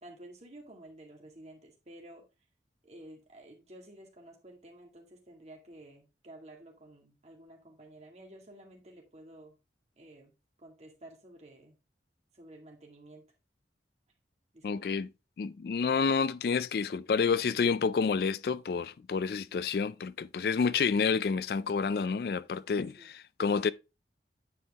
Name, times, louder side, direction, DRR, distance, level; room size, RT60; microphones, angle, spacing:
voice 1, 0.0-2.3 2.8-9.5 10.0-10.3 10.6-11.8 12.3-13.2 14.5-14.9 23.0-23.1, right 1 dB, 35° right, 2.0 m, -52 dB
voice 2, 14.6-15.1 15.4-23.7, left 5 dB, 55° left, 0.3 m, -29 dB
9.5 x 4.6 x 3.4 m
head